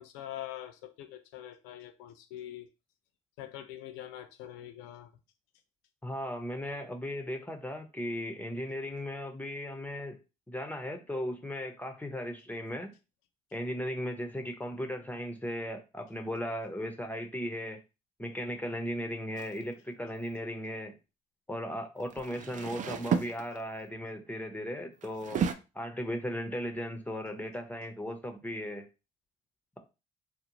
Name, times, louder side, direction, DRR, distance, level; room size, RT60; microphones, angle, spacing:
voice 1, 0.0-2.7 3.4-5.1, left 12 dB, 85° left, 0.4 m, -44 dB
voice 2, 6.0-10.2 10.5-12.9 13.5-17.8 18.2-21.0 21.5-25.4 25.7-28.9, equal, 10° left, 0.6 m, -37 dB
sound 1, 19.4-19.6 22.0-23.9 25.0-25.5, right 7 dB, 45° right, 0.4 m, -32 dB
2.5 x 2.0 x 2.8 m
hypercardioid pair, 55°, 18 cm